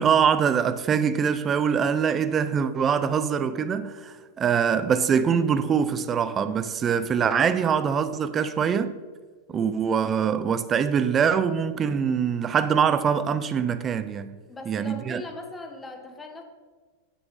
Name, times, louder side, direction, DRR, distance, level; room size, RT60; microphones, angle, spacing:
voice 1, 0.0-8.9 9.5-14.4 14.7-15.2, right 7 dB, 25° right, 0.7 m, -23 dB
voice 2, 14.5-16.4, left 2 dB, 15° left, 1.7 m, -40 dB
9.4 x 8.3 x 5.7 m
hypercardioid pair, 120°, 0 cm